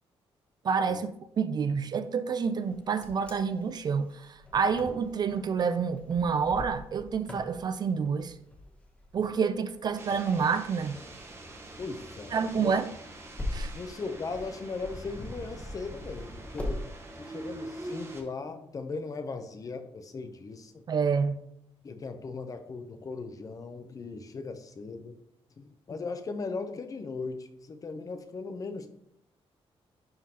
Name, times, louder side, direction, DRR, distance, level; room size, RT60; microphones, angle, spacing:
voice 1, 0.6-8.4 9.1-11.0 12.3-12.9 13.5-13.7 20.9-21.4, right 6 dB, 40° right, 0.4 m, -28 dB
Wind, 2.6-16.8, left 1 dB, 10° left, 1.0 m, -42 dB
sound 1, 10.0-18.2, right 1 dB, 25° right, 1.0 m, -44 dB
voice 2, 11.8-12.8 13.7-16.9 17.2-20.8 21.8-25.1 25.6-28.9, left 4 dB, 35° left, 0.6 m, -38 dB
11.0 x 3.7 x 2.8 m
cardioid pair, 145°, 11 cm